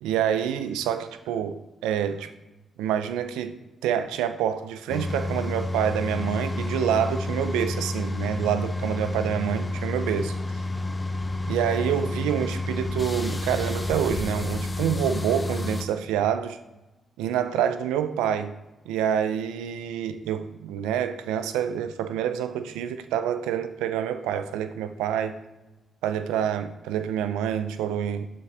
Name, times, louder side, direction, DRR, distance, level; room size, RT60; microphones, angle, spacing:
voice 1, 0.0-2.3 2.8-3.5 3.8-10.4 11.5-16.6 17.2-18.5 18.9-25.4 26.0-28.3, right 9 dB, 90° right, 0.4 m, -27 dB
sound 1, 4.9-15.8, left 2 dB, 30° left, 0.8 m, -30 dB
8.4 x 6.9 x 3.3 m
supercardioid pair, 50°, 0 cm